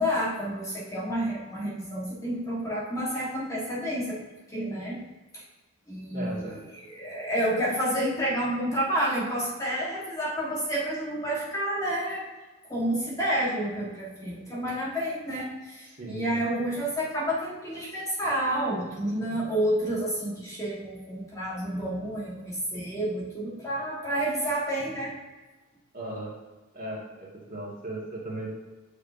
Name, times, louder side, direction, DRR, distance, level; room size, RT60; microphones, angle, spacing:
voice 1, 0.0-4.2 4.5-5.0 5.3-5.4 5.9-6.4 6.7-12.2 12.7-25.1, equal, 15° left, -6 dB, 1.5 m, -29 dB
voice 2, 6.1-6.6 15.9-16.4 25.9-26.3 26.7-28.6, right 1 dB, 40° right, -5 dB, 2.0 m, -37 dB
9.5 x 4.9 x 2.7 m, 1.2 s
head